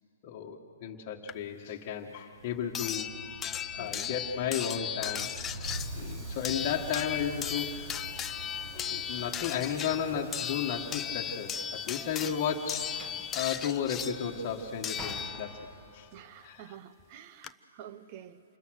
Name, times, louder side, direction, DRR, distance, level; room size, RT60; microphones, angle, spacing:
voice 1, 0.2-3.1 3.7-5.3 5.9-7.9 8.7-15.5 15.9-16.1 16.4-16.7, left 8 dB, 35° left, -1 dB, 1.6 m, -34 dB
sound 1, 1.3-1.4 2.7-15.7 17.0-17.1 17.4-17.5, left 9 dB, 15° left, 0.5 m, -37 dB
sound 2, 2.3-12.9, right 3 dB, 55° right, 1.2 m, -45 dB
voice 2, 3.8-4.1 12.2-12.3 16.1-18.4, right 10 dB, 35° right, 13 dB, 0.9 m, -49 dB
Train / Sliding door, 4.8-16.2, equal, 15° right, 2.3 m, -51 dB
28.0 x 21.5 x 6.5 m, 2.5 s
hypercardioid pair, 145°, 0 cm